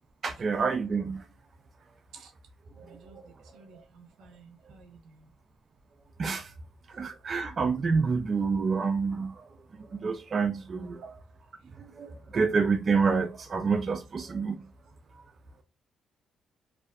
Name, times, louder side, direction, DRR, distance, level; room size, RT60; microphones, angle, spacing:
voice 1, 0.2-1.2 2.8-2.9 3.2-3.3 3.7-3.8 6.2-6.5 7.0-9.3 9.9-11.0 12.0-14.6, right 5 dB, 45° right, 0.4 m, -28 dB
voice 2, 2.8-5.3, right 5 dB, 85° right, 0.6 m, -54 dB
2.3 x 2.3 x 2.3 m
cardioid pair, 90°, 0 cm